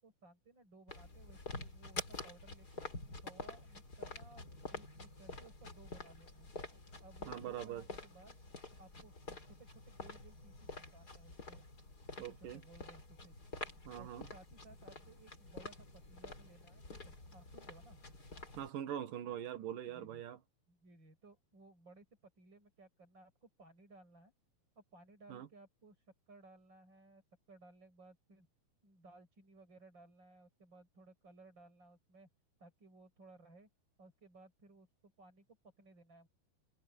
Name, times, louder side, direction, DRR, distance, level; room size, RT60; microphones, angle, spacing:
voice 1, 0.0-2.9 3.2-6.5 7.0-8.4 8.8-11.7 12.1-13.3 13.9-18.0 19.9-20.2 20.7-24.3 24.8-26.0 26.3-27.2 27.5-28.5 28.8-32.3 32.6-33.7 34.0-35.5 35.8-36.3, right 3 dB, 30° right, 7.0 m, -60 dB
sound 1, 0.9-18.7, left 2 dB, 25° left, 4.0 m, -48 dB
voice 2, 7.3-7.9 12.2-12.6 13.8-14.3 18.5-20.4 25.3-25.5, right 10 dB, 65° right, 3.0 m, -43 dB
omnidirectional pair, 4.3 m